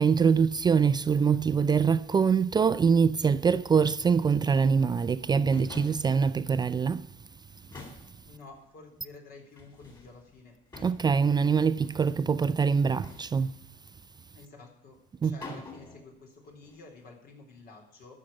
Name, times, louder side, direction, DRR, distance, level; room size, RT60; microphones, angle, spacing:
voice 1, 0.0-7.1 10.8-13.5 15.2-15.4, right 6 dB, 25° right, 0.4 m, -24 dB
sound 1, 1.3-2.4 3.2-5.0 5.3-6.9 7.1-7.2 7.6-8.6 9.5-11.3 11.6-12.4 13.0-13.6 15.0-15.1 15.4-16.1 16.4-17.0, left 3 dB, 25° left, 3.9 m, -49 dB
voice 2, 8.3-10.6 14.3-18.1, left 3 dB, 65° left, 4.0 m, -50 dB
13.0 x 6.5 x 8.7 m
cardioid pair, 110°, 17 cm